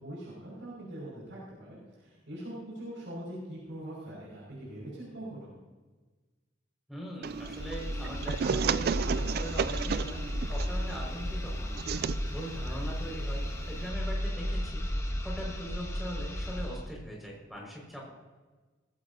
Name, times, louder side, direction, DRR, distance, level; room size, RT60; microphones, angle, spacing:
voice 1, 0.0-5.5, right 1 dB, 80° right, -6 dB, 5.7 m, -42 dB
voice 2, 6.9-10.2 10.5-11.8 12.3-14.9 15.2-18.1, equal, ahead, -2 dB, 5.2 m, -41 dB
sound 1, 7.2-16.9, equal, 15° left, 1.3 m, -34 dB
sound 2, 7.2-13.9, right 7 dB, 55° right, 0.3 m, -34 dB
19.0 x 16.0 x 2.8 m, 1.3 s
head